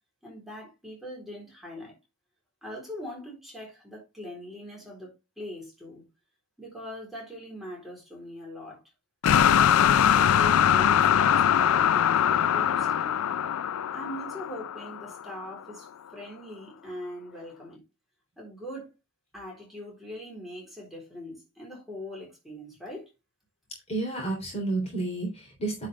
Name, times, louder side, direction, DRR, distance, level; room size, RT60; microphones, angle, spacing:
voice 1, 0.2-2.0 2.6-6.0 6.6-8.8 9.5-13.2 13.9-17.8 18.4-18.9 19.3-23.1, equal, ahead, 3.9 m, -42 dB
sound 1, 9.2-15.3, left 9 dB, 90° left, 0.4 m, -22 dB
voice 2, 23.9-25.9, right 2 dB, 30° left, 3.4 m, -30 dB
9.8 x 5.1 x 3.5 m
head